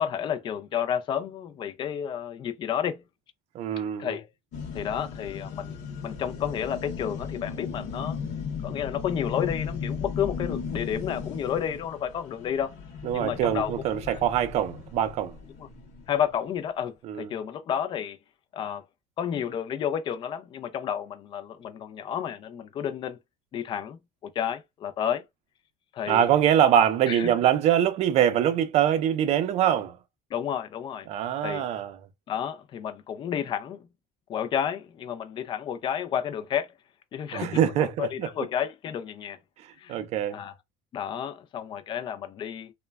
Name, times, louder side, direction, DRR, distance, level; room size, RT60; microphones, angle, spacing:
voice 1, 0.0-3.0 4.0-4.3 4.7-5.8 6.0-8.2 8.6-12.8 13.1-13.7 14.1-14.2 15.6-15.7 16.1-18.2 18.5-18.9 19.2-23.2 23.5-25.2 25.9-26.3 27.1-27.3 30.3-31.1 31.4-31.7 32.3-33.9 34.3-36.7 37.1-39.4 39.8-40.0 40.3-40.5 40.9-42.7, left 9 dB, 35° left, 0.4 m, -31 dB
voice 2, 3.5-4.2 13.0-15.3 17.1-17.3 26.1-30.0 31.1-31.9 37.3-38.3 39.9-40.4, right 10 dB, 50° right, 0.5 m, -24 dB
sound 1, 4.5-16.4, left 6 dB, 60° left, 0.8 m, -36 dB
3.0 x 2.2 x 2.3 m
cardioid pair, 130°, 14 cm